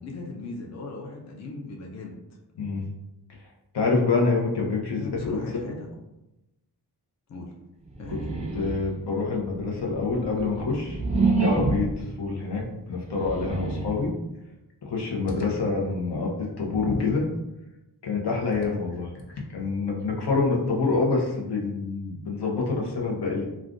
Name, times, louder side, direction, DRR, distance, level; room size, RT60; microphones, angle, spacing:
voice 1, 0.0-2.1 4.9-5.9 7.3-7.5 8.0-8.2, left 3 dB, 45° left, 0 dB, 0.5 m, -38 dB
voice 2, 2.5-2.9 3.4-3.5 3.7-5.8 8.1-8.2 8.5-11.0 11.4-14.1 14.8-17.3 18.0-19.1 19.5-23.5, left 4 dB, 80° left, -1 dB, 0.8 m, -26 dB
sound 1, 7.9-9.0 9.6-12.0 13.0-14.0, right 4 dB, 15° right, 0.6 m, -27 dB
2.4 x 2.4 x 3.6 m, 0.94 s
wide cardioid pair, 110°, 39 cm